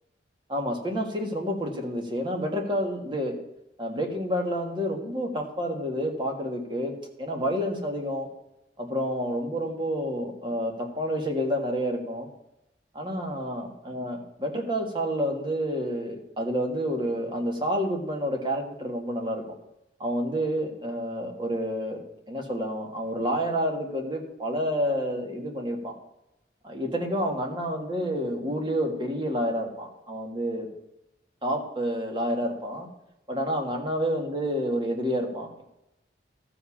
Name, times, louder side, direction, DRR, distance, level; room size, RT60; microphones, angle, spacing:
voice 1, 0.5-3.4 3.8-8.3 8.8-12.3 12.9-19.4 20.0-26.0 26.6-30.7 31.4-32.9 33.3-35.6, equal, 25° right, 2 dB, 1.7 m, -29 dB
13.0 x 5.0 x 7.1 m, 0.89 s
head